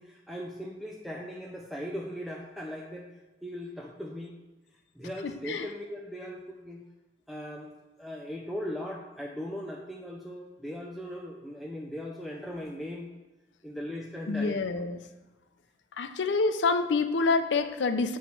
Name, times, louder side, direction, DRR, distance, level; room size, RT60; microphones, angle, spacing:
voice 1, 0.0-3.1 3.4-4.4 4.9-6.8 7.3-7.7 8.0-13.1 13.6-14.5, equal, ahead, -1 dB, 0.4 m, -38 dB
voice 2, 5.2-5.7 14.3-15.0 16.0-18.2, left 4 dB, 85° left, 9 dB, 0.5 m, -27 dB
7.2 x 3.0 x 5.8 m, 1.1 s
head